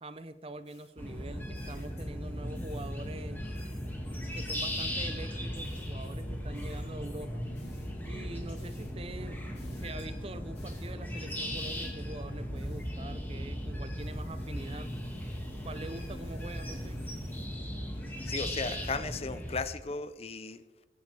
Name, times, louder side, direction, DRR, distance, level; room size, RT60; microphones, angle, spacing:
voice 1, 0.0-3.5 4.3-7.4 8.0-9.4 9.8-14.9 15.6-17.0, right 2 dB, 30° right, 12 dB, 0.5 m, -44 dB
sound 1, 0.6-2.3 2.5-3.1 3.5-13.6 14.0-17.4, left 1 dB, 70° left, 3.1 m, -58 dB
sound 2, 1.0-19.6, equal, 10° left, 2.0 m, -37 dB
voice 2, 18.2-20.8, left 4 dB, 35° left, 13 dB, 0.5 m, -36 dB
21.5 x 9.6 x 3.4 m, 1.3 s
head